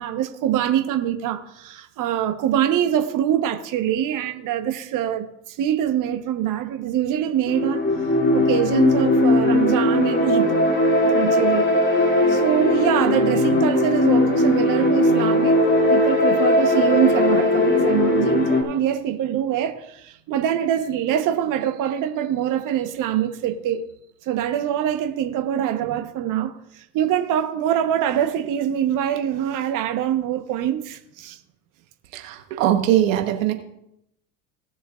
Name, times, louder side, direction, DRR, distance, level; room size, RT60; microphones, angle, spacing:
voice 1, 0.0-7.8 8.3-10.5 11.1-11.7 12.3-23.8 24.3-31.4, right 10 dB, 50° right, 1.2 m, -24 dB
sound 1, 7.5-18.6, left 2 dB, 30° left, 2.7 m, -19 dB
voice 2, 32.1-33.5, right 11 dB, 80° right, 1.3 m, -21 dB
18.5 x 6.9 x 2.5 m
hypercardioid pair, 75°, 39 cm